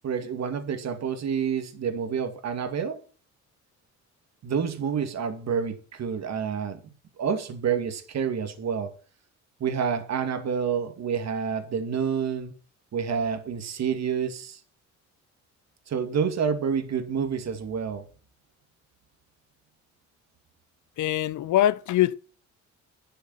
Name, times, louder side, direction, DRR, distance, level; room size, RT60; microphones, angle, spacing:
voice 1, 0.0-3.0 4.4-6.8 7.2-9.0 9.6-12.5 12.9-14.6 15.9-18.1, right 7 dB, 60° right, 2.4 m, -28 dB
voice 2, 21.0-22.1, left 13 dB, 75° left, 0.9 m, -23 dB
12.0 x 7.0 x 7.4 m
cardioid pair, 90°, 30 cm